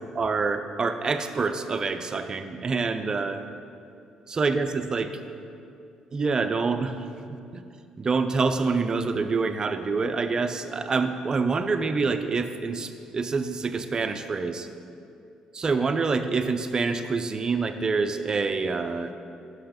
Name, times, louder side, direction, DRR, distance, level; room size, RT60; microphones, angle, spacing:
voice 1, 0.1-3.4 4.3-5.1 6.1-7.6 8.0-14.7 15.5-19.1, right 4 dB, 35° right, 8 dB, 0.5 m, -26 dB
5.8 x 5.7 x 6.7 m, 2.5 s
supercardioid pair, 75°, 2 cm